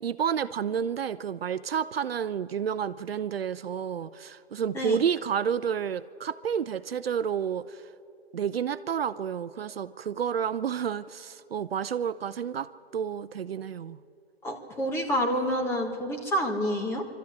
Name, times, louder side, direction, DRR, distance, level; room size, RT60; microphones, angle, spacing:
voice 1, 0.0-7.8 8.3-12.7 12.9-14.0, right 8 dB, 70° right, 13 dB, 0.7 m, -30 dB
voice 2, 14.4-17.0, equal, 10° left, 3 dB, 1.4 m, -28 dB
24.5 x 13.0 x 9.5 m, 2.7 s
hypercardioid pair, 150°, 31 cm